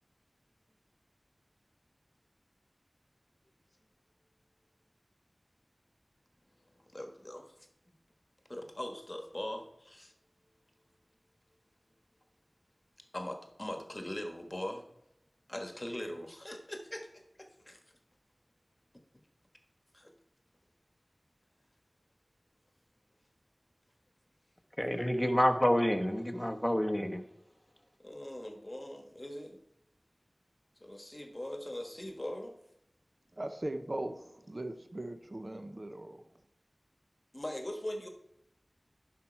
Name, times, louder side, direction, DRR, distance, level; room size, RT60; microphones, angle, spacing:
voice 1, 6.9-7.4 8.5-10.1 13.1-14.8 15.5-17.8 19.9-20.1 25.0-25.2 28.0-29.6 30.8-32.6 37.3-38.1, left 1 dB, 35° left, 4 dB, 1.3 m, -41 dB
voice 2, 24.8-27.2, equal, 10° left, 4 dB, 1.0 m, -28 dB
voice 3, 33.4-36.2, right 1 dB, 50° right, 8 dB, 0.7 m, -39 dB
10.5 x 5.9 x 4.5 m, 0.79 s
wide cardioid pair, 40°, 0 cm